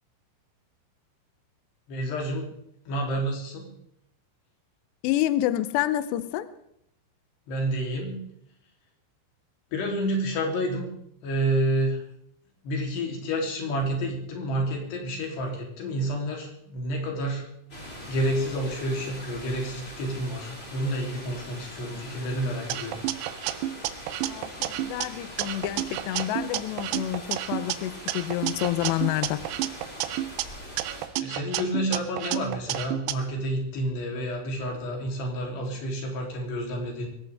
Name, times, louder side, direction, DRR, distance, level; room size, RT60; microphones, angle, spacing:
voice 1, 1.9-2.5 2.9-3.7 7.5-8.2 9.7-10.9 11.2-12.0 12.6-17.5 18.1-23.0 31.2-37.1, right 1 dB, 55° left, 5.2 m, -29 dB
voice 2, 5.0-6.5 24.2-29.5, left 13 dB, 90° left, 2.4 m, -28 dB
sound 1, 17.7-31.1, left 1 dB, 15° left, 2.7 m, -42 dB
sound 2, 22.7-25.1 25.4-27.8 28.1-30.4 30.8-33.1, right 14 dB, 90° right, 3.5 m, -31 dB
22.0 x 17.5 x 3.6 m
omnidirectional pair, 6.0 m